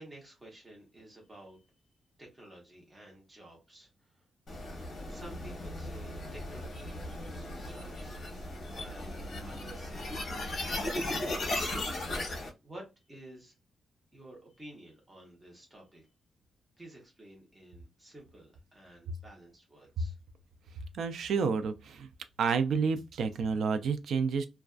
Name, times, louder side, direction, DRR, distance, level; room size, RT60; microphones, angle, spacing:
voice 1, 0.0-1.6 2.2-4.2 5.1-8.2 8.7-11.8 12.2-13.5 14.1-16.1 16.8-20.2, right 1 dB, 15° right, 0.9 m, -52 dB
sound 1, 4.5-12.5, left 1 dB, 45° left, 0.8 m, -37 dB
voice 2, 20.9-22.1 22.4-24.5, right 5 dB, 70° right, 0.3 m, -29 dB
2.4 x 2.2 x 2.3 m
wide cardioid pair, 170°, 0 cm